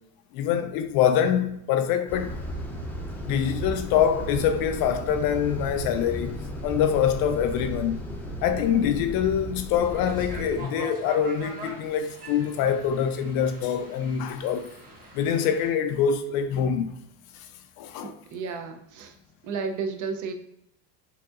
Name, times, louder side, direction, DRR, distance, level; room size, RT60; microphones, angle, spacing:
voice 1, 0.3-2.4 3.2-6.3 6.6-8.0 8.4-14.7 15.1-16.9 17.3-17.5 17.8-18.1, left 8 dB, 50° left, 0.5 m, -25 dB
sound 1, 2.1-10.6, equal, 5° left, 0.6 m, -35 dB
sound 2, 9.8-15.7, right 2 dB, 20° right, 1.4 m, -43 dB
voice 2, 18.0-19.1 19.4-20.3, right 5 dB, 40° right, 0.6 m, -32 dB
4.7 x 2.8 x 2.4 m
supercardioid pair, 120°, 46 cm